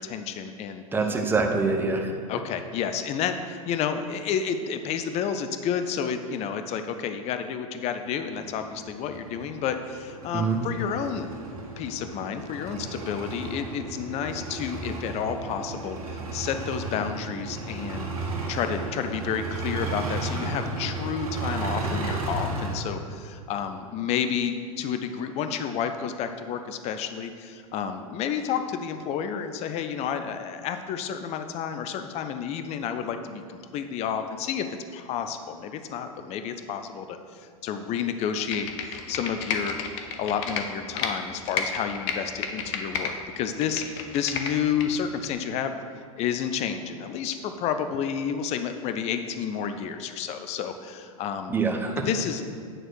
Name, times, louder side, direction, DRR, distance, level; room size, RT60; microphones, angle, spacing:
voice 1, 0.0-0.8 2.3-11.3 11.8-34.7 34.9-39.8 40.2-45.8 46.2-51.6 52.0-52.4, left 7 dB, 35° left, 8 dB, 0.6 m, -30 dB
voice 2, 0.9-2.1 10.3-10.6 51.5-52.0, right 4 dB, 10° right, 3 dB, 1.0 m, -25 dB
sound 1, 8.2-22.8, right 3 dB, 80° right, 1.5 m, -34 dB
Computer keyboard, 38.4-41.1 41.5-43.1 43.5-44.9 45.2-45.3, left 7 dB, 55° left, 0.9 m, -31 dB
9.0 x 4.3 x 6.3 m, 2.1 s
hypercardioid pair, 95°, 18 cm